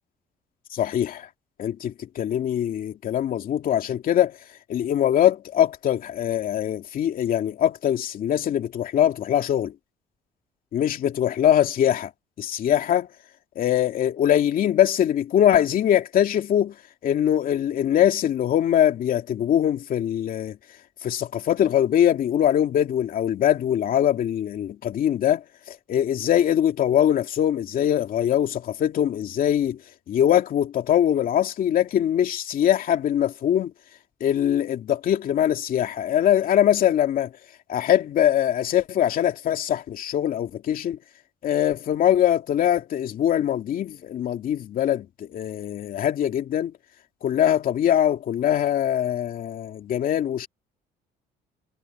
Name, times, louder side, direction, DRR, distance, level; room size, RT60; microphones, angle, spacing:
voice 1, 0.7-1.3 1.6-4.4 4.7-9.7 10.7-12.1 12.4-13.1 13.6-16.7 17.0-20.6 21.0-29.8 30.1-33.7 34.2-37.3 37.7-41.0 41.4-46.7 47.2-50.5, left 10 dB, 55° left, 2.5 m, -22 dB
cardioid pair, 110°, 17 cm